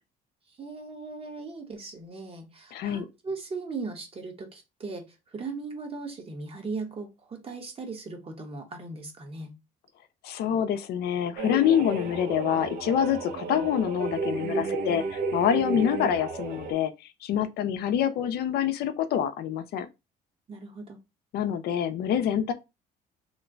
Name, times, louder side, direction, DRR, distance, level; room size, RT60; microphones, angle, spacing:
voice 1, 0.5-9.5 20.5-21.0, right 3 dB, 35° right, 1.1 m, -38 dB
voice 2, 2.7-3.1 10.2-16.9 17.2-19.9 21.3-22.5, left 9 dB, 70° left, 0.5 m, -26 dB
sound 1, 11.4-16.7, right 3 dB, 65° right, 0.8 m, -32 dB
3.1 x 2.2 x 3.8 m
cardioid pair, 110°, 17 cm